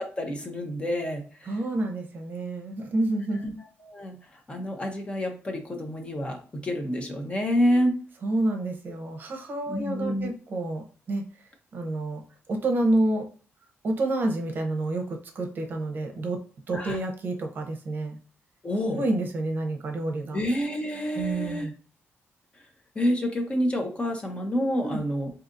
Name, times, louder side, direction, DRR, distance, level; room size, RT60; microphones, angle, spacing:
voice 1, 0.0-1.5 3.4-3.5 3.8-4.2 4.5-7.9 9.7-10.3 16.7-17.0 18.6-19.0 20.3-21.7 23.0-25.3, equal, 25° left, 2 dB, 0.7 m, -28 dB
voice 2, 1.5-3.4 8.2-11.2 11.7-12.2 12.5-13.3 13.8-16.4 16.7-18.2 18.9-20.4 21.1-21.7 24.8-25.0, right 2 dB, 45° right, 3 dB, 0.7 m, -28 dB
3.9 x 2.7 x 2.5 m, 0.41 s
cardioid pair, 130°, 5 cm